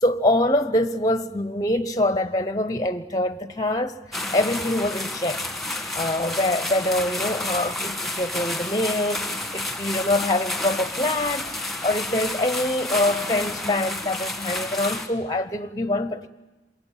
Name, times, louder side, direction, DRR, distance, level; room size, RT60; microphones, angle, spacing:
voice 1, 0.0-4.0 4.3-5.4 5.9-9.3 9.5-11.5 11.8-16.3, left 1 dB, 20° left, 0.9 m, -24 dB
sound 1, 4.1-15.1, left 1 dB, ahead, 1.9 m, -30 dB
28.0 x 22.5 x 9.2 m
head